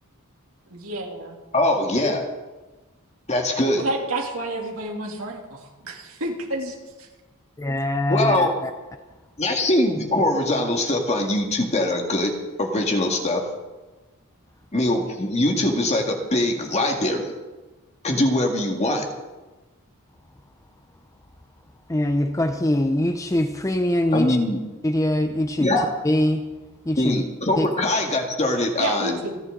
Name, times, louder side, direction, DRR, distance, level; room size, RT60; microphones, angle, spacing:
voice 1, 0.7-1.3 3.8-7.1 28.8-29.4, right 1 dB, 65° right, 2.9 m, -30 dB
voice 2, 1.5-2.3 3.3-3.8 8.1-8.5 9.4-12.3 12.6-13.5 14.7-17.3 18.0-19.0 24.1-24.6 25.6-25.9 27.0-29.2, left 1 dB, 30° left, 1.9 m, -22 dB
voice 3, 7.6-8.7 21.9-24.4 24.8-25.7 26.0-26.5 26.9-27.2 27.6-27.7, left 1 dB, 15° left, 0.6 m, -23 dB
28.0 x 11.0 x 3.9 m
head